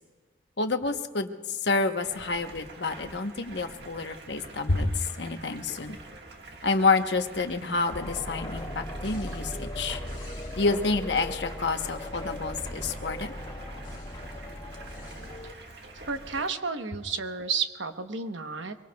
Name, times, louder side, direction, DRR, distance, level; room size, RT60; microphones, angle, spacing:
voice 1, 0.6-6.0 6.6-10.0 10.6-13.3, left 3 dB, 65° left, 6 dB, 1.0 m, -28 dB
Stream, 2.0-16.5, right 2 dB, 60° right, 1.6 m, -46 dB
sound 1, 7.9-15.5, left 1 dB, 25° left, 2.0 m, -38 dB
voice 2, 16.1-18.7, right 5 dB, 90° right, 7 dB, 1.1 m, -31 dB
24.5 x 23.0 x 2.3 m, 1.5 s
head